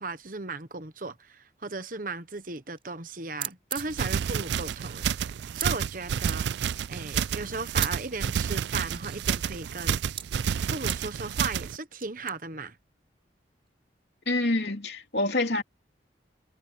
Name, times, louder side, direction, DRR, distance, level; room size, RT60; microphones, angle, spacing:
voice 1, 0.0-6.5 6.9-10.0 10.6-12.8, right 3 dB, 45° right, 1.2 m, -36 dB
sound 1, 2.3-2.8 3.1-3.2 3.4-5.7 6.3-6.4 7.4-7.9 8.3-9.4 10.2-10.3 10.9-11.0 12.0-12.3, right 9 dB, 30° right, 7.0 m, -37 dB
sound 2, 3.8-11.8, right 8 dB, 70° right, 0.4 m, -30 dB
voice 2, 14.3-15.6, left 2 dB, 65° left, 2.9 m, -26 dB
head